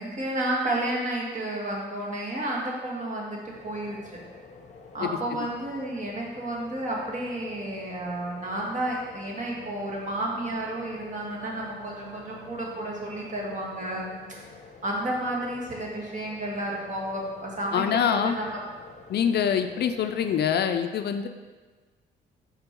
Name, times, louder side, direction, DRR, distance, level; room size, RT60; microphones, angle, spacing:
voice 1, 0.0-4.2 4.9-14.1 14.8-18.5, right 1 dB, 40° right, -3 dB, 1.6 m, -31 dB
sound 1, 3.4-20.6, left 4 dB, 35° left, 0.8 m, -49 dB
Wind instrument woodwind instrument, 9.4-14.6, right 2 dB, 65° right, 1.9 m, -49 dB
voice 2, 17.7-18.4 19.1-21.3, left 8 dB, 55° left, 8 dB, 0.4 m, -25 dB
5.2 x 4.4 x 4.5 m, 1.4 s
cardioid pair, 90°, 20 cm